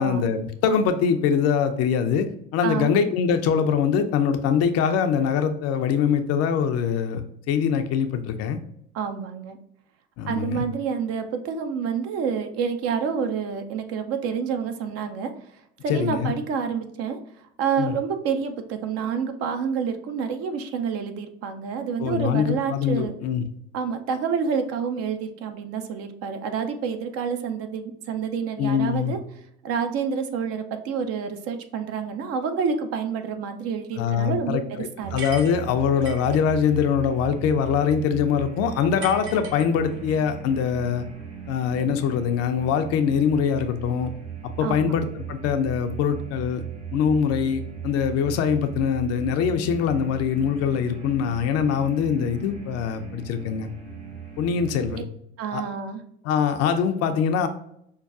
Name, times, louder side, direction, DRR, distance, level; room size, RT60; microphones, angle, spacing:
voice 1, 0.0-7.2 7.5-8.6 10.2-10.6 15.9-16.3 17.8-17.9 22.0-23.4 28.6-29.2 34.0-41.1 41.5-44.1 44.4-46.6 46.9-53.7 54.4-55.0 55.5-55.6 56.2-57.5, left 7 dB, 50° left, 8 dB, 0.5 m, -23 dB
voice 2, 2.6-2.9 8.9-9.6 10.3-15.3 15.8-17.2 17.6-23.1 23.7-29.2 29.6-34.6 35.0-35.2 44.6-44.9 55.4-56.0, right 6 dB, 45° right, 7 dB, 0.6 m, -28 dB
sound 1, 35.0-54.9, right 8 dB, 90° right, 0.8 m, -37 dB
sound 2, 35.2-36.4 39.0-40.2, right 2 dB, 65° right, 1.2 m, -38 dB
5.4 x 2.2 x 2.4 m, 0.72 s
hypercardioid pair, 70°, 33 cm